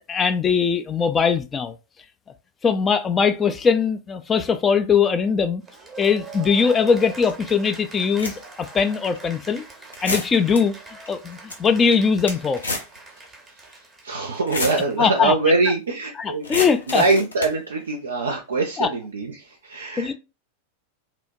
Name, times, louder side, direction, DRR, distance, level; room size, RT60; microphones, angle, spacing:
voice 1, 0.1-1.7 2.6-5.6 6.0-9.6 10.0-10.7 11.1-12.6 15.0-15.3 16.2-17.0 18.8-18.9 20.0-20.1, left 6 dB, 20° left, 0.3 m, -21 dB
Cheering / Applause, 5.6-15.2, right 3 dB, 15° right, 0.8 m, -42 dB
sound 1, 7.3-7.4 8.0-8.6 9.2-9.3 9.9-10.6 11.1-11.2 11.3-11.6 11.9-13.0 13.2-13.3 14.3-14.8 16.4-17.6, left 2 dB, 75° left, 0.6 m, -29 dB
voice 2, 14.0-16.5 16.9-20.1, right 3 dB, 70° right, 0.4 m, -23 dB
2.9 x 2.1 x 2.5 m
figure-of-eight pair, 90°, 0 cm